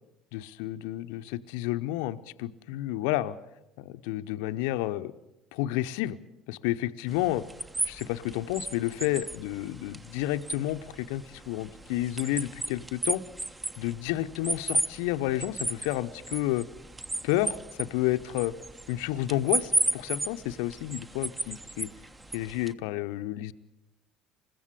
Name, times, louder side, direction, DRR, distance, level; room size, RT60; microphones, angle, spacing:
voice 1, 0.3-3.4 3.8-5.1 5.5-6.2 6.5-7.4 7.9-13.2 13.8-16.7 17.2-18.5 18.9-21.9 22.3-23.5, left 15 dB, 65° left, 10 dB, 0.8 m, -30 dB
sound 1, 7.1-22.7, right 2 dB, 15° right, 1.3 m, -35 dB
28.5 x 15.5 x 8.3 m, 0.92 s
figure-of-eight pair, 60°, 0 cm